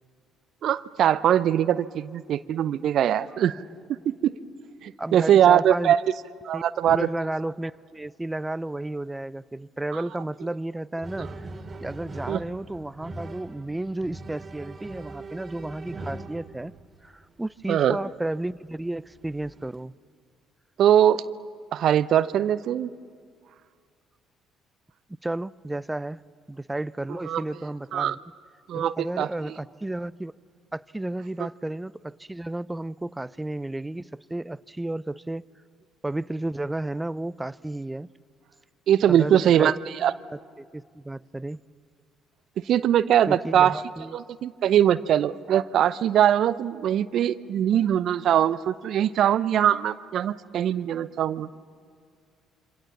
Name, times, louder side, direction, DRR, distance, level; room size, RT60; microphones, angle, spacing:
voice 1, 0.6-3.6 3.9-4.3 4.8-6.0 6.4-7.1 9.9-10.0 12.3-12.4 17.7-18.0 20.8-21.2 21.7-22.9 27.3-27.4 27.9-28.2 28.7-29.3 38.9-40.1 42.6-43.8 44.1-51.5, right 10 dB, 60° right, 0.6 m, -22 dB
voice 2, 5.0-5.9 6.5-11.3 11.8-16.7 17.0-19.9 25.2-26.2 26.5-28.2 28.7-30.3 30.7-35.4 36.0-38.1 39.1-39.7 40.3-41.6 43.3-44.2, right 1 dB, 10° right, 0.6 m, -32 dB
sound 1, 11.0-17.0 18.2-18.3 19.1-19.8, right 2 dB, 35° right, 2.4 m, -41 dB
27.0 x 25.5 x 7.3 m
hypercardioid pair, 50°, 0 cm